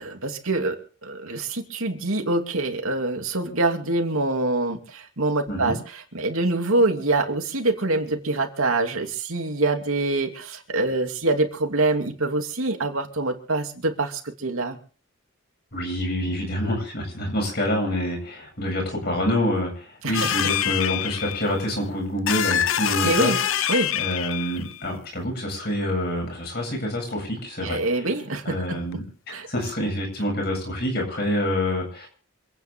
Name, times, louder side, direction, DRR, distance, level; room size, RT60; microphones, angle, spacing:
voice 1, 0.0-14.8 20.0-20.4 23.0-23.4 23.7-24.0 27.6-28.8 29.3-29.5, right 2 dB, 85° right, 3 dB, 2.8 m, -25 dB
voice 2, 15.7-23.4 23.9-27.8 28.5-29.0 29.5-32.1, left 1 dB, 50° left, 1 dB, 8.0 m, -27 dB
sound 1, 20.1-21.7 22.3-24.8 27.1-27.2 28.9-29.0 29.5-29.6, left 10 dB, 75° left, 0.7 m, -25 dB
27.0 x 9.7 x 3.7 m, 0.40 s
head